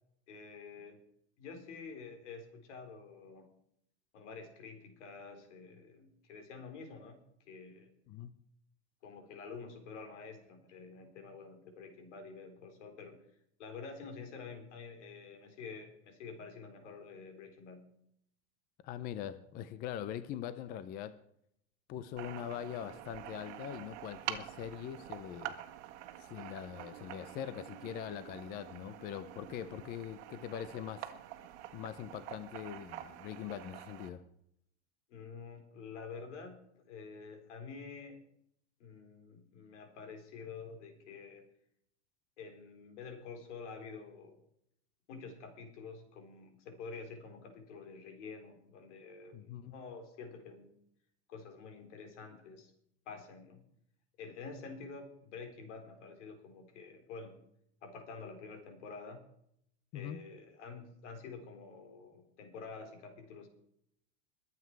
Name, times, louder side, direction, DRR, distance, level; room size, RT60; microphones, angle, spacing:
voice 1, 0.3-1.0 1.4-3.5 4.1-7.9 9.0-17.9 35.1-38.2 38.8-41.4 42.4-44.4 45.1-50.7 51.3-52.7 53.1-53.6 54.2-57.4 57.8-59.2 59.9-63.5, left 4 dB, 80° left, 5 dB, 4.1 m, -48 dB
voice 2, 18.8-21.2 21.9-25.5 26.2-31.1 31.7-34.2 49.3-49.7 59.9-60.2, left 10 dB, 25° left, 14 dB, 0.6 m, -42 dB
sound 1, 22.2-34.1, right 12 dB, 70° right, 1.6 m, -47 dB
22.0 x 8.3 x 4.7 m, 0.71 s
supercardioid pair, 155°, 35 cm